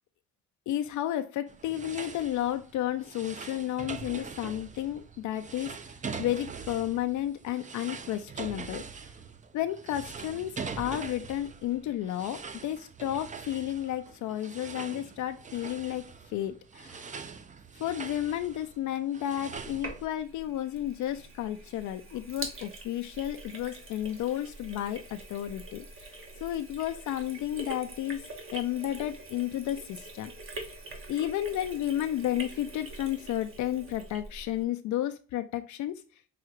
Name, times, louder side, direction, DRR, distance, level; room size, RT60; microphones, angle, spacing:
voice 1, 0.7-8.9 9.5-17.1 17.7-26.1 26.4-28.2 28.5-30.3 31.1-36.0, left 12 dB, 70° left, 8 dB, 0.4 m, -32 dB
sound 1, 1.5-20.1, right 5 dB, 25° right, 0.4 m, -43 dB
Sink (filling or washing), 19.5-34.6, right 2 dB, 45° right, 1.2 m, -44 dB
5.8 x 2.4 x 3.0 m, 0.37 s
cardioid pair, 90°, 30 cm